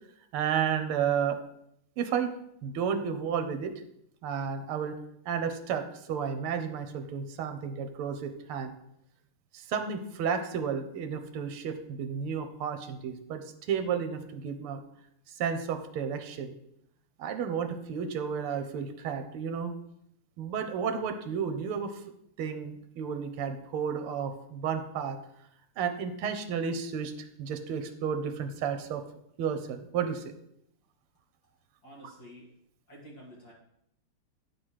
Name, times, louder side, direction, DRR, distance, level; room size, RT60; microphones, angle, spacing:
voice 1, 0.3-1.4 2.0-2.3 2.6-3.7 4.2-4.9 5.2-8.7 9.5-14.8 15.3-16.5 17.2-19.7 20.4-22.0 22.4-25.2 25.8-29.0 29.4-30.3, right 7 dB, 80° right, 9 dB, 1.7 m, -32 dB
voice 2, 31.8-32.5 32.9-33.5, equal, 45° left, -4 dB, 2.4 m, -49 dB
9.1 x 4.0 x 6.2 m, 0.75 s
omnidirectional pair, 2.4 m